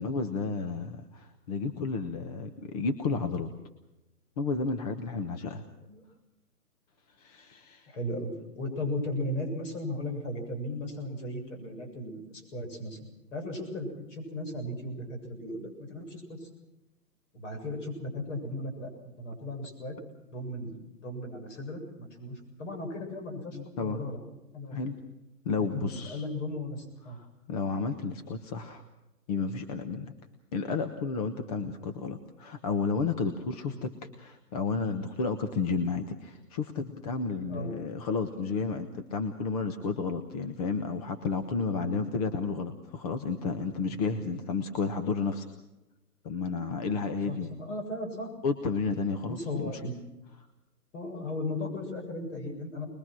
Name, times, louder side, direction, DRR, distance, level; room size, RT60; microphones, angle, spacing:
voice 1, 0.0-3.5 4.4-5.6 7.2-7.9 23.5-24.0 24.7-25.0 25.4-26.2 27.1-28.8 29.3-30.1 30.5-33.9 34.2-45.5 46.2-47.5 48.4-49.7, left 4 dB, 25° left, 7 dB, 1.0 m, -32 dB
voice 2, 7.9-13.0 13.3-16.5 17.3-20.0 20.3-24.2 24.5-24.8 25.6-27.2 33.6-33.8 37.4-37.7 41.8-42.0 44.3-44.4 47.2-48.3 49.3-50.0 50.9-52.9, left 1 dB, 50° left, 4 dB, 7.5 m, -36 dB
24.5 x 21.5 x 6.2 m, 0.97 s
hypercardioid pair, 150°, 48 cm